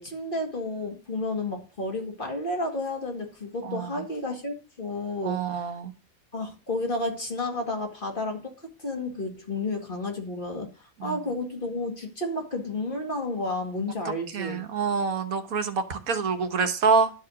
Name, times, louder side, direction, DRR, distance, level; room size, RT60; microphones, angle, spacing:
voice 1, 0.0-5.7 6.3-10.7 11.0-14.7, left 2 dB, 35° left, 2.1 m, -31 dB
voice 2, 3.6-4.0 5.2-5.9 11.0-11.2 14.3-17.1, right 5 dB, 80° right, 1.6 m, -26 dB
11.5 x 4.9 x 6.1 m
omnidirectional pair, 1.5 m